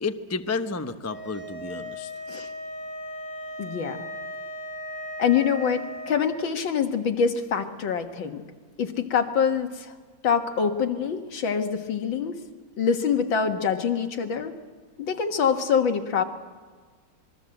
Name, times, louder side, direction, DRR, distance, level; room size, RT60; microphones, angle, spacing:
voice 1, 0.0-2.1, left 4 dB, 20° left, 8 dB, 0.4 m, -31 dB
sound 1, 1.1-6.2, equal, 55° left, 5.1 m, -37 dB
voice 2, 3.6-4.1 5.2-8.4 8.8-9.9 10.2-12.4 12.8-14.5 15.0-16.2, left 7 dB, 75° left, 6 dB, 2.3 m, -25 dB
26.0 x 21.0 x 7.8 m, 1.5 s
omnidirectional pair, 2.1 m